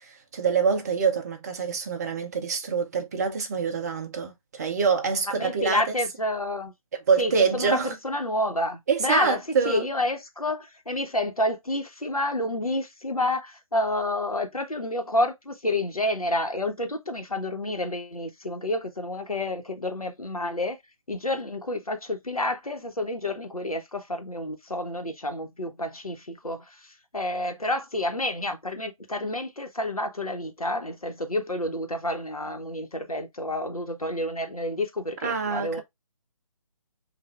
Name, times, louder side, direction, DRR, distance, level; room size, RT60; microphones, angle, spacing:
voice 1, 0.1-5.8 7.1-7.9 8.9-9.9 35.2-35.8, right 5 dB, 30° right, 0.7 m, -25 dB
voice 2, 5.4-6.7 7.2-9.4 9.6-20.8 21.1-35.8, left 1 dB, 85° left, 1.2 m, -29 dB
6.0 x 2.6 x 2.4 m
figure-of-eight pair, 145°, 18 cm